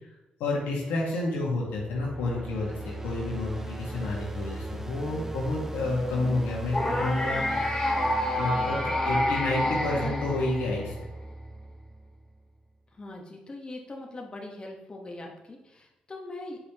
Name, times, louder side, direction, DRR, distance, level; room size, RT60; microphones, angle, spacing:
voice 1, 0.4-7.4 8.4-10.9, left 2 dB, 90° left, -2 dB, 1.7 m, -30 dB
sound 1, 1.6-12.6, right 1 dB, 15° right, 0.6 m, -38 dB
sound 2, 6.7-10.9, left 1 dB, 15° left, 2.1 m, -28 dB
voice 2, 12.9-16.6, left 2 dB, 30° left, 0 dB, 1.3 m, -41 dB
7.5 x 5.1 x 3.0 m, 0.98 s
supercardioid pair, 65°, 3 cm